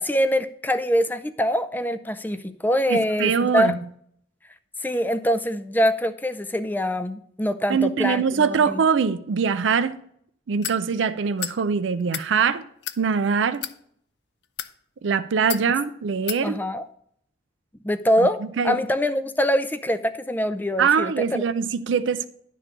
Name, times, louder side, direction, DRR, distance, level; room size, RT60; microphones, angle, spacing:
voice 1, 0.0-3.7 4.8-8.8 16.4-16.8 17.8-21.4, equal, 10° left, 0.4 m, -24 dB
voice 2, 2.9-3.8 7.7-9.9 10.5-12.6 13.0-13.6 15.0-16.6 18.6-18.8 20.8-22.3, right 6 dB, 80° right, 0.4 m, -22 dB
sound 1, 10.6-10.8 11.4-11.6 12.0-12.3 12.8-13.0 13.5-13.8 14.4-14.7 15.5-15.7 16.3-16.4, left 11 dB, 65° left, 0.5 m, -31 dB
11.0 x 3.7 x 6.8 m
head